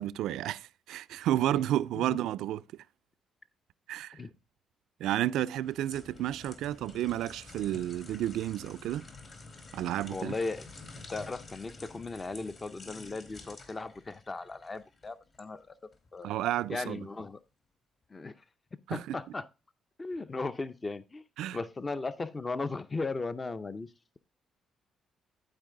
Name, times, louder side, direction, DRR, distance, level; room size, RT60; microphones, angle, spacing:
voice 1, 0.0-2.6 3.9-4.2 5.0-9.1 9.7-10.3 16.2-17.0 18.9-19.1 21.4-21.6, right 13 dB, 85° right, 0.3 m, -31 dB
sound 1, 5.5-15.5 15.9-16.1, left 3 dB, 45° left, 2.4 m, -50 dB
voice 2, 10.1-10.7 11.1-15.7 16.1-16.3 16.7-17.4 18.1-18.4 18.9-19.5 20.0-21.2 21.5-24.2, left 3 dB, 25° left, 0.5 m, -37 dB
12.0 x 4.5 x 3.7 m
cardioid pair, 90°, 0 cm